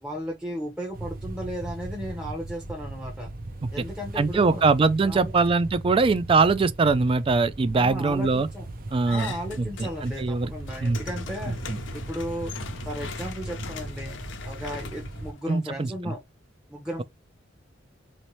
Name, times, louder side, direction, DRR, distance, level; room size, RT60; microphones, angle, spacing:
voice 1, 0.0-3.3 3.7-4.7 5.0-5.3 7.7-8.7 9.0-12.5 12.8-14.2 14.4-16.2 16.7-17.0, equal, 5° right, 0.7 m, -35 dB
sound 1, 0.9-15.3, right 2 dB, 50° right, 0.7 m, -38 dB
voice 2, 4.2-8.5 8.9-10.5 10.8-11.0 11.7-11.8 15.5-16.1, right 4 dB, 30° right, 0.3 m, -22 dB
sound 2, 9.1-10.2 10.5-15.9, left 6 dB, 80° left, 0.6 m, -41 dB
3.1 x 2.8 x 3.0 m
head